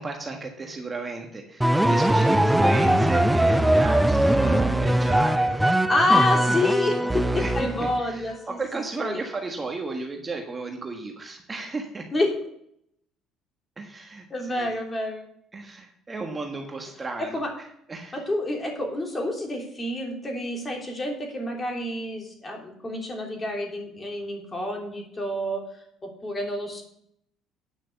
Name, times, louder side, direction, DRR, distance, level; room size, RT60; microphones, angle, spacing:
voice 1, 0.0-5.9 6.2-6.5 7.3-7.5 7.8-12.1 13.8-14.7 15.5-17.4 17.9-18.2, right 3 dB, 25° right, 3 dB, 1.5 m, -33 dB
sound 1, 1.6-8.1, right 1 dB, 5° right, 0.5 m, -21 dB
voice 2, 4.3-4.7 5.9-8.6 9.0-9.2 12.1-12.3 14.3-15.3 17.2-17.5 18.1-25.6 26.0-26.8, left 2 dB, 25° left, 1 dB, 3.2 m, -28 dB
9.5 x 5.9 x 6.9 m, 0.70 s
supercardioid pair, 90°, 0 cm